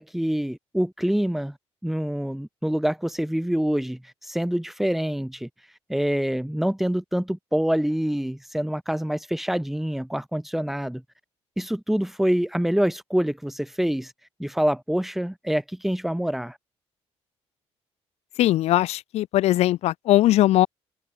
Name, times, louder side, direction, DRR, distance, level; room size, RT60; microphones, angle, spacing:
voice 1, 0.0-1.6 1.8-11.0 11.6-14.1 14.4-16.6, equal, ahead, 4.3 m, -26 dB
voice 2, 18.4-20.7, left 15 dB, 75° left, 1.1 m, -20 dB
open air
cardioid pair, 150°, 11 cm